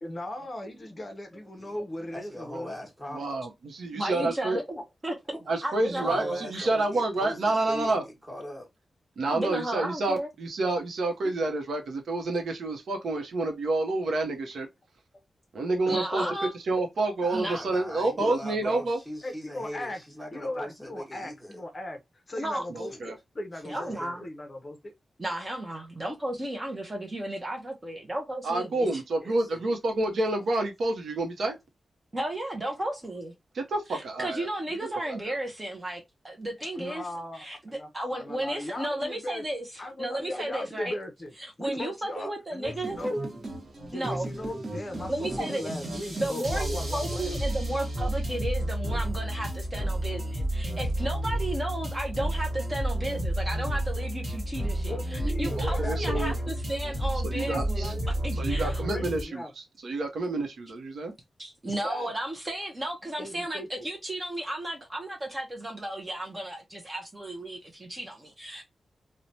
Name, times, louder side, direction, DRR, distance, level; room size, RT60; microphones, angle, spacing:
voice 1, 0.0-2.8 4.2-5.2 15.9-16.3 18.2-18.4 18.6-18.8 19.2-20.0 20.3-22.0 22.3-23.9 24.2-24.9 36.7-39.4 39.8-43.2 43.8-47.4 54.9-56.5 57.5-58.2 58.6-59.5 61.7-62.1 63.2-63.9, left 1 dB, 30° left, 0.5 m, -38 dB
voice 2, 2.1-3.4 5.3-5.5 5.9-8.7 11.2-11.3 17.2-21.6 22.8-23.0 23.6-24.3 25.7-25.9 29.1-29.7 32.6-32.7, equal, 5° right, 1.0 m, -41 dB
voice 3, 3.1-4.6 5.5-8.0 9.2-14.7 15.5-16.2 16.5-19.0 22.7-23.2 28.4-31.6 33.5-34.5 35.1-35.3 55.6-56.4 57.2-57.9 58.4-61.1, right 2 dB, 80° right, 0.6 m, -29 dB
voice 4, 3.9-4.8 5.0-5.1 5.6-6.7 9.3-10.3 15.9-16.5 17.3-17.6 22.4-22.6 23.6-24.3 25.2-29.0 32.1-33.3 33.9-37.1 37.3-39.6 40.0-41.0 41.4-43.0 43.9-44.3 45.1-57.9 58.2-58.8 61.4-68.6, right 1 dB, 20° right, 0.5 m, -34 dB
sound 1, 42.6-59.2, right 1 dB, 40° right, 1.0 m, -31 dB
3.1 x 2.0 x 2.6 m
wide cardioid pair, 160°, 0 cm